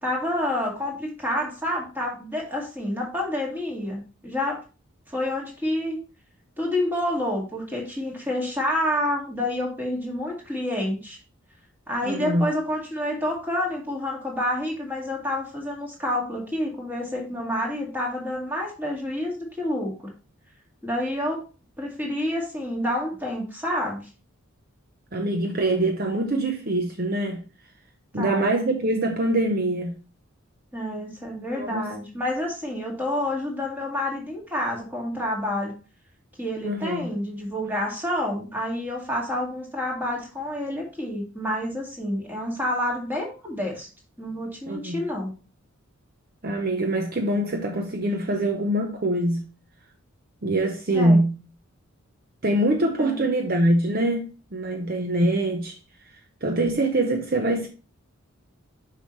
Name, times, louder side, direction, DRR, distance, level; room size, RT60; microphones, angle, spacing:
voice 1, 0.0-4.6 5.1-6.0 6.6-11.2 11.9-19.9 20.8-21.4 21.8-24.0 28.2-28.5 30.7-35.7 36.4-43.9 44.2-45.3 50.9-51.2 53.0-53.3, left 1 dB, 10° right, 2.0 m, -28 dB
voice 2, 12.0-12.5 25.1-27.4 28.1-30.0 31.6-31.9 36.6-37.1 44.7-45.0 46.4-49.4 50.4-51.3 52.4-55.8 56.4-57.7, right 1 dB, 45° right, 0.7 m, -24 dB
7.0 x 5.6 x 3.1 m
head